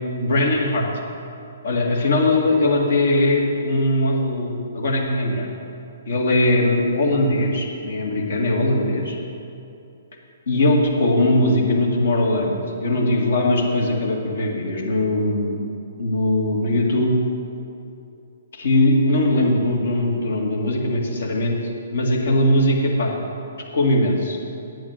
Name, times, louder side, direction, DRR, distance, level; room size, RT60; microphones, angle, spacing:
voice 1, 0.2-0.9 1.6-5.5 6.1-9.2 10.5-15.6 16.0-17.1 18.5-21.6 21.9-23.2 23.7-24.4, left 1 dB, 60° left, -1 dB, 2.1 m, -20 dB
9.6 x 8.7 x 6.3 m, 2.7 s
figure-of-eight pair, 125°, 0 cm